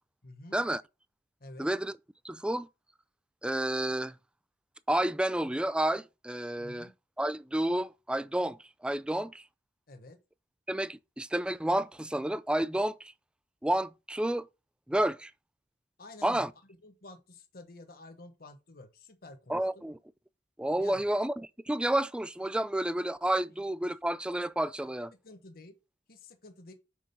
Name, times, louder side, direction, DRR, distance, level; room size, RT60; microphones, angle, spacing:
voice 1, 0.2-0.6 1.4-1.7 6.6-6.9 9.9-10.2 16.0-19.8 20.7-21.1 23.4-23.5 25.1-25.8 26.1-26.7, left 2 dB, 60° left, 1.2 m, -50 dB
voice 2, 1.6-1.9 2.2-2.7 3.4-4.1 4.9-6.9 7.2-9.4 10.7-13.1 13.6-14.5 14.9-15.3 16.2-16.5 19.5-20.0 20.6-25.1, right 1 dB, 5° right, 0.3 m, -30 dB
6.1 x 4.4 x 5.4 m
head